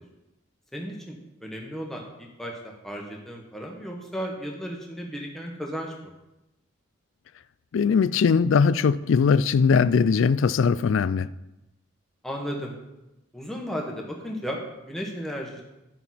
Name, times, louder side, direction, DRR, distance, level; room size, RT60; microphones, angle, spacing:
voice 1, 0.7-1.2 1.4-2.6 2.8-6.1 12.2-12.7 13.3-14.6 14.9-15.6, equal, ahead, 1.4 m, -34 dB
voice 2, 7.7-11.3, left 5 dB, 70° left, 0.3 m, -20 dB
11.5 x 7.1 x 4.2 m
head